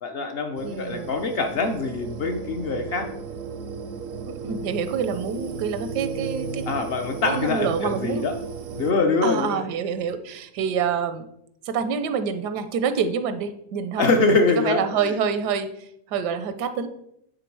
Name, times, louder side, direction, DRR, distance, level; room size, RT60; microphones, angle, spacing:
voice 1, 0.0-3.1 6.7-8.3 8.7-9.6 14.0-14.8, left 3 dB, 55° left, 5 dB, 0.7 m, -23 dB
sound 1, 0.6-8.9, right 5 dB, 70° right, 0.8 m, -35 dB
voice 2, 0.6-1.1 4.3-6.7 7.3-8.2 9.2-11.3 11.6-14.1 14.6-16.9, right 6 dB, 85° right, 10 dB, 1.2 m, -27 dB
9.1 x 3.7 x 4.6 m, 0.76 s
omnidirectional pair, 1.7 m